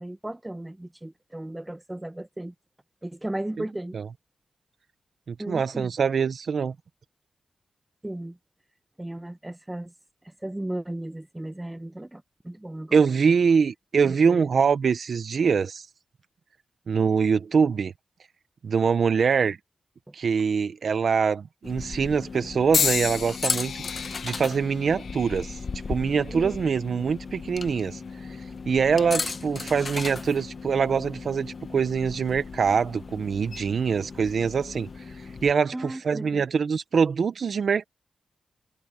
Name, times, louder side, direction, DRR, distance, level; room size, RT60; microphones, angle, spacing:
voice 1, 0.0-2.5 3.0-4.0 5.4-5.9 8.0-8.4 9.0-9.9 10.2-13.4 14.0-14.5 20.1-20.2 26.3-26.6 35.7-36.4, right 1 dB, 15° right, 1.6 m, -36 dB
voice 2, 5.3-6.7 12.9-15.9 16.9-17.9 18.6-19.6 20.1-25.6 25.9-28.0 28.7-34.9 35.4-37.8, right 6 dB, 70° right, 1.0 m, -24 dB
sound 1, 21.6-35.5, left 4 dB, 55° left, 1.1 m, -36 dB
sound 2, 22.7-26.9 27.6-28.0 29.0-29.2, left 7 dB, 80° left, 0.6 m, -32 dB
cardioid pair, 50°, 0 cm